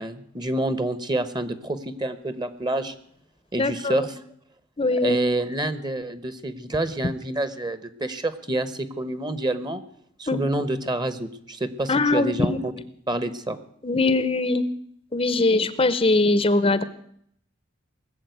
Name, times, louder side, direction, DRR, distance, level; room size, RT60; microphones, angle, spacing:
voice 1, 0.0-2.9 3.5-4.2 4.9-9.8 10.2-12.7 13.1-13.6, right 1 dB, 25° right, 12 dB, 1.1 m, -28 dB
voice 2, 3.5-4.1 4.8-5.2 10.3-10.4 11.9-12.6 13.8-14.7 15.1-16.8, left 2 dB, 30° left, 14 dB, 0.8 m, -21 dB
19.5 x 7.5 x 9.3 m, 0.67 s
head